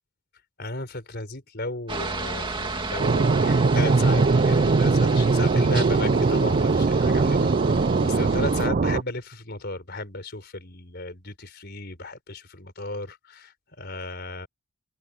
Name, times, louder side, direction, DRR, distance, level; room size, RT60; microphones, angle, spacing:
voice 1, 0.6-14.5, left 2 dB, 45° left, 4.4 m, -35 dB
Aircraft, 1.9-8.7, right 3 dB, 20° right, 2.3 m, -33 dB
sound 1, 3.0-9.0, right 4 dB, 35° right, 0.4 m, -21 dB
head